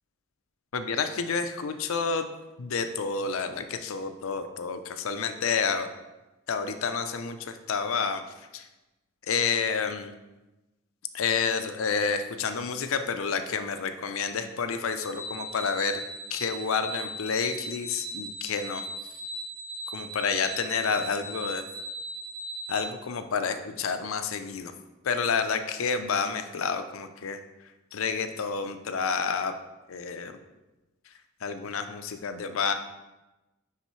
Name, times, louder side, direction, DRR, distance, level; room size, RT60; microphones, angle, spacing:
voice 1, 0.7-2.3 2.6-5.9 6.5-8.7 9.3-10.1 11.1-16.0 16.3-19.2 19.9-21.6 22.7-24.7 25.0-27.4 27.9-29.5 29.9-30.4 31.4-32.7, left 5 dB, 80° left, 8 dB, 0.5 m, -29 dB
sound 1, 14.9-22.8, equal, 75° right, 1.4 m, -38 dB
9.6 x 3.7 x 3.1 m, 1.0 s
head